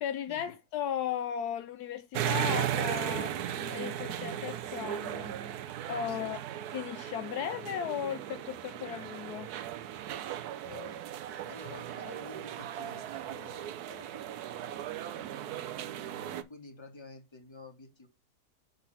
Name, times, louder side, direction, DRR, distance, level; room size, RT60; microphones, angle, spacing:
voice 1, 0.0-5.3 5.9-6.4 6.7-9.5, left 9 dB, 75° left, 1.1 m, -36 dB
sound 1, 2.1-16.4, right 11 dB, 75° right, 1.2 m, -36 dB
voice 2, 6.1-6.4 10.7-11.2 11.4-14.8 15.1-18.1, left 3 dB, 15° left, 1.5 m, -50 dB
6.0 x 4.1 x 5.5 m
omnidirectional pair, 1.7 m